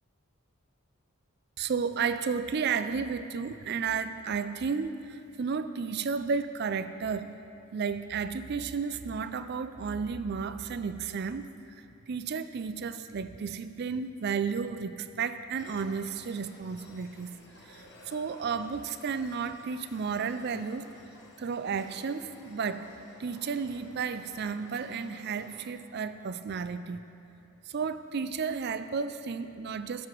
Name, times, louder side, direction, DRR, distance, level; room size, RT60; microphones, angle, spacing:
voice 1, 1.6-7.3 7.7-11.5 11.8-17.3 17.6-20.9 21.4-22.9 23.2-27.0 27.7-30.1, right 5 dB, 50° right, 12 dB, 0.4 m, -33 dB
sound 1, 15.6-25.7, left 1 dB, 55° left, 1.1 m, -54 dB
12.5 x 7.8 x 4.6 m, 2.9 s
head